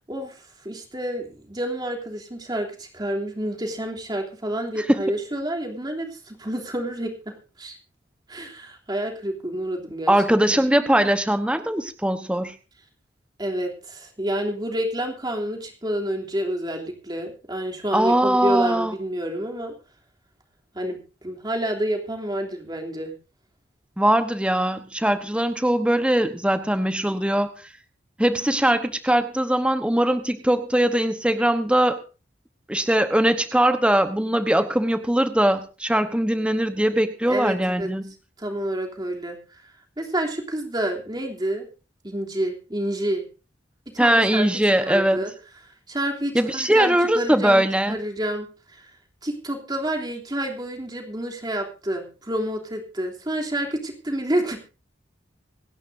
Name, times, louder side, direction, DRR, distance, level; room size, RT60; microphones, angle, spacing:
voice 1, 0.1-7.3 7.6-7.8 8.3-10.1 10.5-10.6 13.4-19.7 20.7-23.1 37.2-37.9 38.4-39.6 40.0-41.7 42.0-43.3 43.9-44.5 44.8-45.3 45.9-48.9 49.2-54.6, right 1 dB, 20° right, 1 dB, 3.1 m, -29 dB
voice 2, 10.1-12.5 17.9-18.9 24.0-27.5 28.2-32.0 32.7-38.1 44.0-45.2 46.3-48.0, right 1 dB, 5° right, 9 dB, 1.0 m, -21 dB
26.5 x 11.0 x 2.7 m, 0.34 s
head